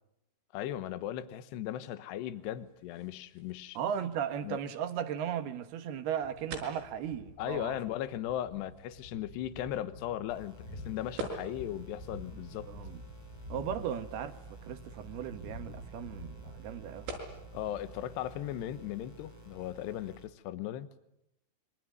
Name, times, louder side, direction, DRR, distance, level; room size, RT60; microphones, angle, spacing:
voice 1, 0.5-3.8 4.4-4.6 7.4-12.7 17.5-20.9, left 12 dB, 70° left, 3.0 m, -37 dB
sound 1, 2.2-19.9, right 3 dB, 85° right, 8.2 m, -50 dB
voice 2, 3.7-7.8 12.3-13.0 13.5-14.4 14.6-17.1, right 9 dB, 65° right, 2.9 m, -36 dB
Thunder, 6.2-19.5, left 2 dB, 55° left, 7.4 m, -50 dB
sound 2, 10.3-20.3, right 4 dB, 5° left, 2.2 m, -52 dB
26.5 x 24.0 x 9.4 m
omnidirectional pair, 5.6 m